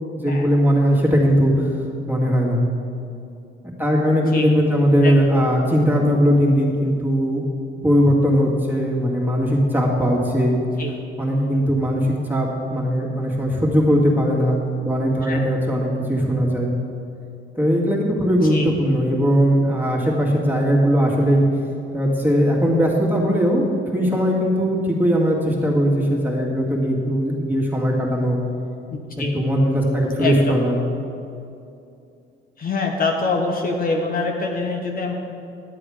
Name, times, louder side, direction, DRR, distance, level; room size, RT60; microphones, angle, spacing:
voice 1, 0.1-1.7 2.1-2.7 3.8-7.5 7.8-10.6 11.2-16.7 17.6-21.4 21.9-23.6 23.9-28.4 29.3-30.8, equal, 10° right, -3 dB, 2.1 m, -19 dB
voice 2, 18.3-18.7 28.9-29.4 30.2-30.6 32.6-35.1, left 3 dB, 45° left, 1 dB, 1.1 m, -25 dB
11.0 x 7.7 x 5.0 m, 2.6 s
cardioid pair, 90°, 20 cm